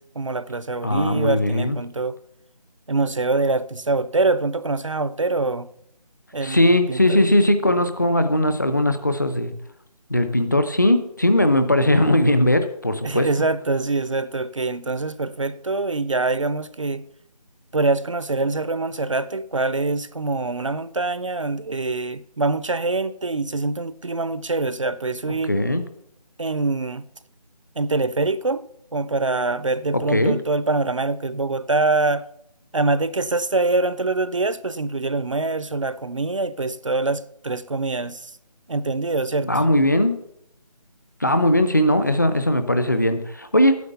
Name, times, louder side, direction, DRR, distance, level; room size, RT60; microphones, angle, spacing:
voice 1, 0.0-2.2 2.9-5.7 6.3-7.2 13.0-17.0 17.7-25.6 26.4-27.0 27.8-28.6 28.9-32.3 32.7-38.3 38.7-39.5, right 3 dB, 50° right, 0.5 m, -24 dB
voice 2, 0.8-1.8 6.4-9.5 10.1-13.3 25.5-25.8 30.1-30.3 39.4-40.1 41.2-43.8, left 1 dB, 30° left, 0.6 m, -19 dB
9.5 x 7.3 x 6.9 m
figure-of-eight pair, 175°, 21 cm